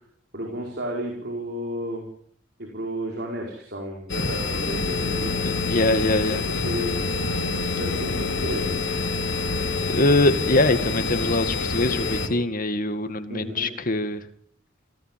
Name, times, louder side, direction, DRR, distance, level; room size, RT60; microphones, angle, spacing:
voice 1, 0.3-2.1 2.6-5.4 5.8-7.0 7.5-8.7 13.3-13.7, right 1 dB, 55° right, 0 dB, 5.1 m, -33 dB
sound 1, 4.1-12.3, left 4 dB, 65° left, 3.9 m, -26 dB
voice 2, 5.4-6.4 9.9-14.2, left 2 dB, 45° left, 10 dB, 2.1 m, -23 dB
28.0 x 17.5 x 7.7 m, 0.63 s
head